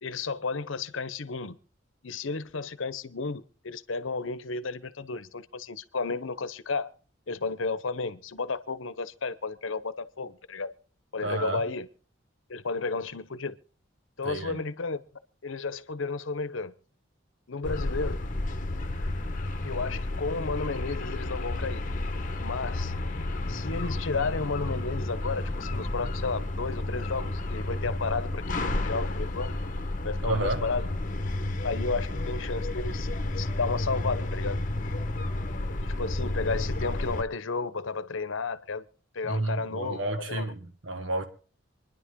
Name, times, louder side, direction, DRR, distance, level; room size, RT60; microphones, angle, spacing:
voice 1, 0.0-1.6 2.0-6.9 7.3-10.7 11.1-11.9 12.5-13.6 14.2-15.0 15.4-16.7 17.5-18.2 19.6-21.8 22.4-22.9 23.5-29.6 30.0-30.9 31.6-33.1 33.3-34.6 35.8-38.8 39.1-40.0 40.3-40.5, left 4 dB, 80° left, 0.9 m, -33 dB
voice 2, 11.2-11.6 14.2-14.6 30.2-30.6 39.2-41.2, right 1 dB, 75° right, 1.9 m, -30 dB
sound 1, 17.6-37.2, left 2 dB, 40° left, 1.2 m, -31 dB
27.0 x 10.5 x 3.7 m
head